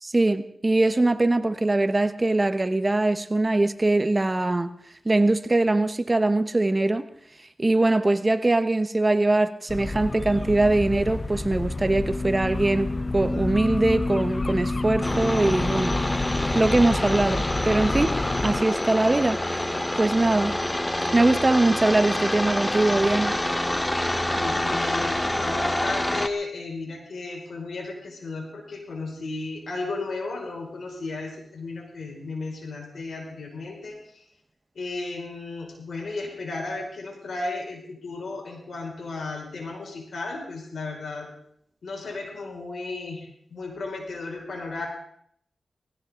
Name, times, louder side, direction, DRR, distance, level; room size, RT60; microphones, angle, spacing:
voice 1, 0.0-4.7 5.0-7.1 7.6-16.0 16.5-18.2 18.4-19.7 20.0-20.6 21.1-23.4, right 2 dB, 30° right, 11 dB, 1.1 m, -22 dB
sound 1, 9.7-18.6, left 2 dB, 40° left, 1.0 m, -29 dB
sound 2, 15.0-26.3, left 1 dB, 15° left, 1.1 m, -27 dB
voice 2, 24.3-34.2 34.7-41.3 41.8-44.9, left 3 dB, 75° left, 0 dB, 5.6 m, -34 dB
20.0 x 16.5 x 3.8 m, 0.67 s
cardioid pair, 55°, 0 cm